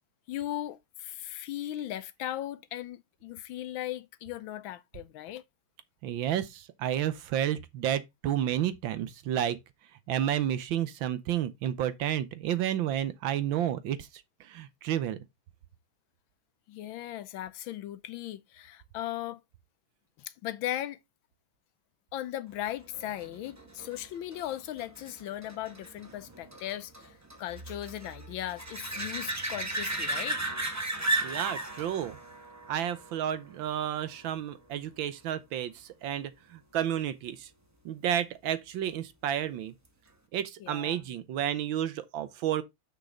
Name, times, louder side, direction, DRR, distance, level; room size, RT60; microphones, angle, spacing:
voice 1, 0.3-5.4 16.7-19.4 20.2-21.0 22.1-30.4 40.6-41.0, left 13 dB, 75° left, 1.3 m, -37 dB
voice 2, 6.0-9.6 10.1-14.1 14.4-15.2 31.2-32.2 32.7-37.5 37.8-39.7 40.3-42.6, right 10 dB, 75° right, 1.4 m, -31 dB
sound 1, 22.9-34.2 39.8-39.9, right 2 dB, 20° right, 0.4 m, -36 dB
6.6 x 6.2 x 3.7 m
omnidirectional pair, 2.3 m